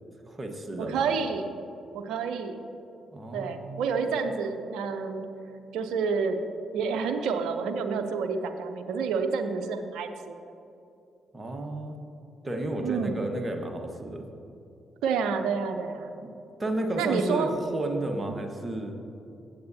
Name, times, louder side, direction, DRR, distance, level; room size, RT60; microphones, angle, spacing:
voice 1, 0.3-1.1 3.1-3.9 11.3-12.0 12.4-14.2 16.2-16.3 16.6-18.9, right 1 dB, 25° right, 3 dB, 1.4 m, -32 dB
voice 2, 0.8-1.6 1.9-2.7 3.3-5.3 5.7-6.4 6.7-10.4 12.8-13.2 15.0-16.1 17.0-17.5, right 5 dB, 70° right, 7 dB, 0.6 m, -29 dB
16.0 x 8.0 x 2.8 m, 2.7 s
hypercardioid pair, 45°, 0 cm